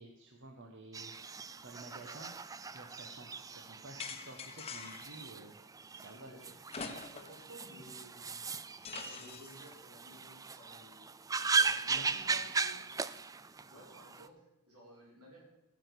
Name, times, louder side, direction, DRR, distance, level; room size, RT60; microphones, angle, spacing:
voice 1, 0.0-1.3 1.6-2.3 2.7-5.6 5.9-6.3 11.9-12.4, right 2 dB, 55° right, 2 dB, 1.2 m, -51 dB
sound 1, 0.9-14.3, right 4 dB, 15° right, 0.3 m, -38 dB
sound 2, 4.0-5.2 6.7-7.4 7.8-7.9 8.8-9.7, left 5 dB, 25° left, 1.0 m, -44 dB
voice 2, 6.1-6.5 7.1-8.4 9.0-11.1 11.5-12.8 13.6-15.4, equal, 85° right, -3 dB, 5.1 m, -55 dB
15.0 x 6.2 x 6.9 m, 0.97 s
head